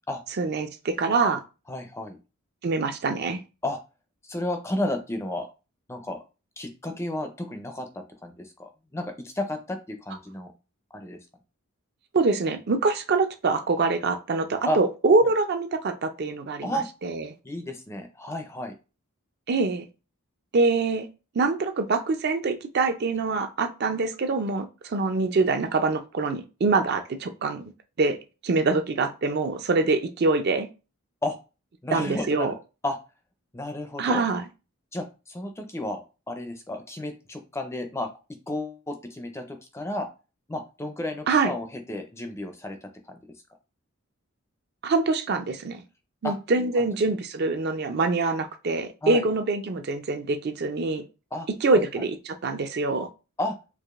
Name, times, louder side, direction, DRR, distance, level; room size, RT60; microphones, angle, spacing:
voice 1, 0.4-1.4 2.6-3.4 12.1-17.2 19.5-19.8 20.5-21.1 21.3-27.7 28.0-28.2 28.4-30.7 31.9-32.5 34.0-34.4 41.3-41.5 44.8-45.8 46.2-51.0 51.6-53.1, right 3 dB, 50° right, 7 dB, 0.4 m, -24 dB
voice 2, 1.7-2.2 3.6-3.8 4.2-5.5 5.9-6.2 6.6-10.5 10.9-11.2 14.6-14.8 16.6-16.9 17.4-18.8 31.2-31.4 31.8-32.6 32.8-33.0 33.5-34.2 34.9-36.0 36.3-38.1 38.5-40.1 40.5-43.2 46.2-46.3 46.8-46.9 49.0-49.3 51.3-51.8 53.4-53.6, left 1 dB, 10° left, 5 dB, 0.4 m, -32 dB
4.7 x 2.5 x 2.4 m, 0.30 s
head